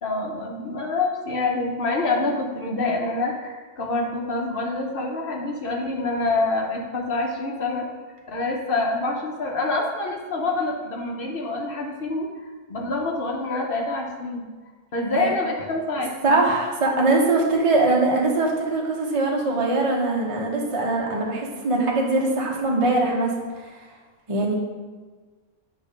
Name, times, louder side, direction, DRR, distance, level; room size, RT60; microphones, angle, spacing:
voice 1, 0.0-7.9 8.3-12.3 12.7-14.5 14.9-16.4, left 2 dB, 45° left, 0 dB, 1.0 m, -26 dB
voice 2, 16.2-23.7 24.3-24.6, right 2 dB, 30° right, -2 dB, 0.7 m, -22 dB
8.3 x 2.8 x 5.1 m, 1.4 s
omnidirectional pair, 1.5 m